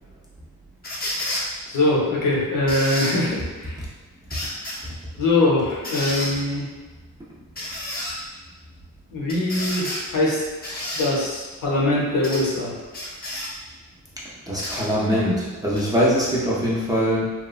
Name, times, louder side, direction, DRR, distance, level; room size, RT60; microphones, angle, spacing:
sound 1, 0.8-1.5 2.7-3.2 4.3-4.8 5.8-6.3 7.6-8.1 9.3-10.0 10.6-11.1 12.2-12.4 12.9-13.5 14.6-14.8 15.7-15.8, left 1 dB, 25° left, 0.6 m, -30 dB
voice 1, 1.7-3.8 5.2-6.7 9.1-10.4 10.9-12.7, left 2 dB, 70° left, -4 dB, 0.8 m, -22 dB
voice 2, 14.5-17.3, equal, 10° right, -7 dB, 0.4 m, -22 dB
2.9 x 2.2 x 2.3 m, 1.3 s
cardioid pair, 115°, 35 cm